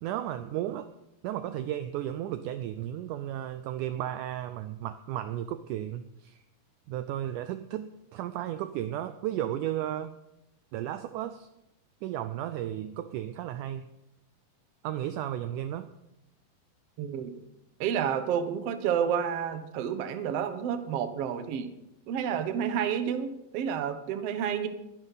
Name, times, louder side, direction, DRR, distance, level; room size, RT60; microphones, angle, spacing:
voice 1, 0.0-0.9 1.2-6.4 6.9-10.1 10.7-11.5 12.0-13.9 14.8-15.9, right 12 dB, 85° right, 11 dB, 1.8 m, -34 dB
voice 2, 17.0-17.3 17.8-21.7 22.1-24.7, right 8 dB, 70° right, 9 dB, 1.5 m, -30 dB
21.5 x 10.5 x 4.1 m, 0.86 s
omnidirectional pair, 4.3 m